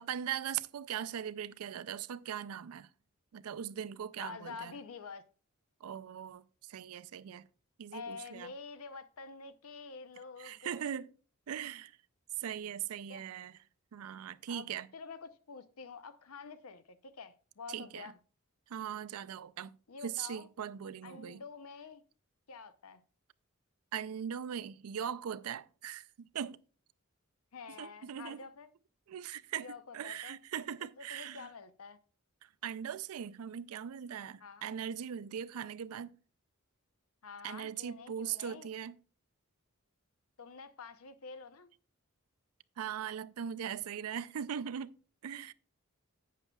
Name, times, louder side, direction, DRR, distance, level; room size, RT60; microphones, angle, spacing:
voice 1, 0.0-2.9 3.3-4.7 5.8-7.5 7.8-8.5 10.4-11.1 11.5-11.9 12.4-13.6 13.9-14.9 17.7-18.1 18.7-19.7 20.0-21.4 23.9-26.6 27.8-28.4 29.1-31.5 32.6-36.2 37.4-38.9 42.8-44.9 45.2-45.5, right 9 dB, 90° right, 0.4 m, -40 dB
voice 2, 4.2-5.2 7.9-10.9 13.1-13.2 14.5-18.2 19.9-20.5 21.0-22.0 22.5-23.0 27.5-28.7 29.6-30.4 30.8-32.0 34.4-34.7 37.2-38.7 40.4-41.7, left 5 dB, 85° left, 0.7 m, -48 dB
11.0 x 8.3 x 2.3 m
head